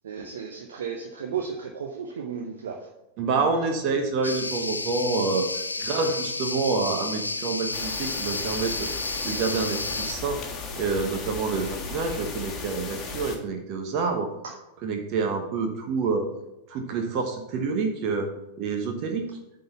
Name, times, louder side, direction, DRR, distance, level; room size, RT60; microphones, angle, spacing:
voice 1, 0.0-2.8 14.4-14.6, right 6 dB, 65° right, 2 dB, 0.8 m, -34 dB
voice 2, 3.2-5.5 5.8-8.9 9.2-10.4 10.8-14.3 14.8-16.3 16.7-18.3 18.6-19.2, right 4 dB, 40° right, 4 dB, 1.0 m, -27 dB
sound 1, 4.2-10.1, left 3 dB, 80° left, 0.4 m, -31 dB
sound 2, 7.7-13.4, left 4 dB, 25° left, 1.6 m, -36 dB
9.0 x 3.9 x 6.7 m, 0.90 s
figure-of-eight pair, 90°, 0 cm